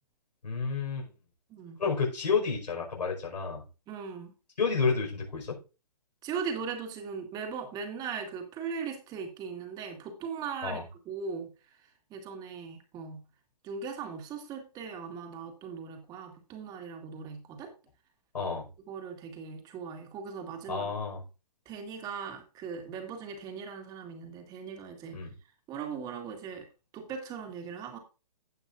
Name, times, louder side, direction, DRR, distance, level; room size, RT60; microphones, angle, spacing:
voice 1, 0.4-1.1 1.8-3.6 4.6-5.6 10.6-10.8 18.3-18.6 20.7-21.2 25.1-25.3, left 5 dB, 85° left, -1 dB, 5.2 m, -30 dB
voice 2, 3.9-4.3 6.2-11.5 12.1-13.2 13.6-17.7 18.9-20.9 21.7-25.2 25.7-26.7 26.9-28.0, right 6 dB, 20° right, 4 dB, 2.0 m, -39 dB
16.5 x 5.8 x 2.6 m, 0.32 s
hypercardioid pair, 150°, 21 cm